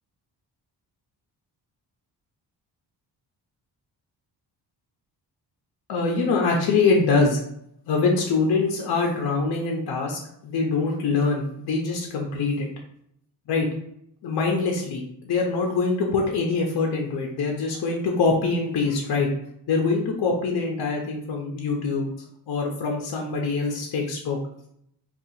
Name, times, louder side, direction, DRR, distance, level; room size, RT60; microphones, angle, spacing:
voice 1, 5.9-7.4 7.9-12.7 13.5-13.7 14.2-19.3 19.7-22.1 22.5-24.4, left 4 dB, 65° left, 0 dB, 0.6 m, -24 dB
4.0 x 2.4 x 2.7 m, 0.72 s
wide cardioid pair, 150°, 42 cm